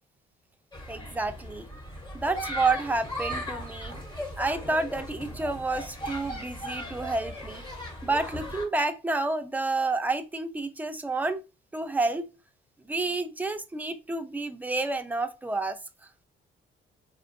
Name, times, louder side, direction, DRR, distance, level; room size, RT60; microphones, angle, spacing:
sound 1, 0.7-8.7, equal, 20° left, 1.1 m, -38 dB
voice 1, 0.9-1.7 2.1-4.0 4.4-7.6 8.0-11.4 11.7-12.3 12.9-15.8, right 3 dB, 10° right, 0.4 m, -29 dB
4.2 x 2.2 x 2.5 m
cardioid pair, 90°, 20 cm